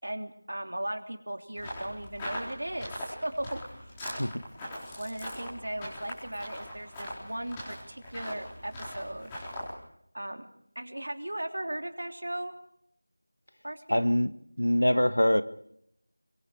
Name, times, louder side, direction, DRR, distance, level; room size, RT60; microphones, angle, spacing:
voice 1, 0.0-3.9 5.0-9.4 10.1-10.5 10.7-12.6 13.6-14.0, right 1 dB, 65° right, 5 dB, 3.2 m, -37 dB
sound 1, 1.6-9.7, equal, 10° left, 4.2 m, -41 dB
voice 2, 13.9-14.3 14.6-15.4, equal, 85° left, 12 dB, 1.4 m, -23 dB
26.0 x 23.0 x 4.8 m, 0.72 s
figure-of-eight pair, 175°, 0 cm